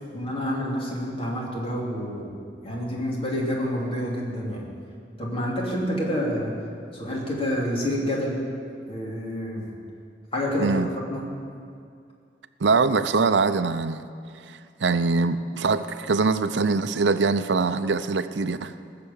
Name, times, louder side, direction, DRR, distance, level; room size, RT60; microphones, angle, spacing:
voice 1, 0.1-2.3 2.6-4.6 5.2-6.5 6.9-8.4 8.9-9.7 10.3-11.2, equal, 35° left, -3 dB, 3.1 m, -28 dB
voice 2, 12.6-14.1 14.5-18.7, right 4 dB, 85° right, 12 dB, 0.6 m, -23 dB
19.0 x 6.9 x 8.7 m, 2.3 s
head